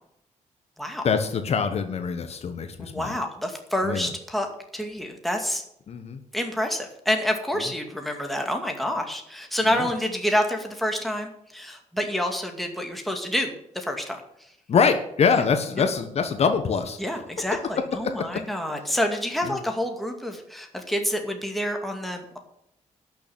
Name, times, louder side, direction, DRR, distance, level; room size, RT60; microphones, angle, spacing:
voice 1, 1.0-3.2 3.8-4.1 5.9-6.2 9.6-9.9 14.7-17.0 18.0-18.4 18.9-19.0 19.4-19.6, left 6 dB, 55° left, 7 dB, 1.2 m, -24 dB
voice 2, 2.8-4.5 4.7-5.6 6.3-14.2 17.0-22.4, equal, ahead, 3 dB, 2.3 m, -28 dB
12.0 x 6.9 x 8.8 m, 0.75 s
cardioid pair, 135°, 13 cm